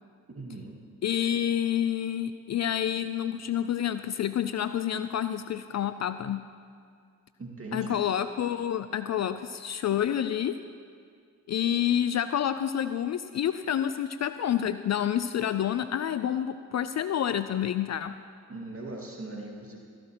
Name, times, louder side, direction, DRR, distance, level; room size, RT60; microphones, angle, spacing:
voice 1, 0.3-0.8 7.4-8.0 18.5-19.8, right 2 dB, 35° right, -1 dB, 2.1 m, -40 dB
voice 2, 1.0-6.5 7.7-10.6 11.5-18.2, left 10 dB, 45° left, 12 dB, 0.4 m, -28 dB
14.0 x 12.0 x 3.0 m, 2.2 s
hypercardioid pair, 40°, 40 cm